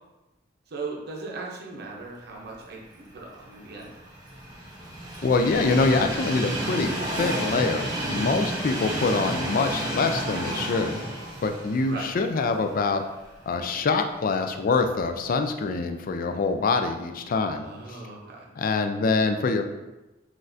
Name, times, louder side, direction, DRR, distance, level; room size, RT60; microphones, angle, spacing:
voice 1, 0.7-3.9 11.8-12.1 17.6-18.5, right 3 dB, 60° right, -1 dB, 0.7 m, -38 dB
Train, 3.2-13.4 13.8-13.9 15.0-15.1, right 1 dB, 20° right, 0.8 m, -31 dB
voice 2, 5.2-6.9 7.2-10.9 11.4-13.0 13.5-17.7 18.6-19.6, left 4 dB, 50° left, 6 dB, 0.4 m, -25 dB
6.0 x 2.5 x 2.6 m, 1.0 s
head